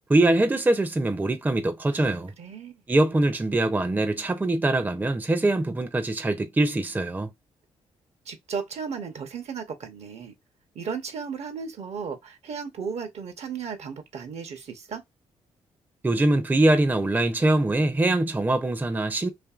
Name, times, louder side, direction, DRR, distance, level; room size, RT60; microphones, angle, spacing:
voice 1, 0.1-2.3 2.9-7.3 16.0-19.3, right 2 dB, 15° right, 0.5 m, -23 dB
voice 2, 2.4-2.8 8.3-10.3 10.7-15.0, right 6 dB, 60° right, 0.7 m, -35 dB
2.7 x 2.5 x 2.3 m
supercardioid pair, 50°, 12 cm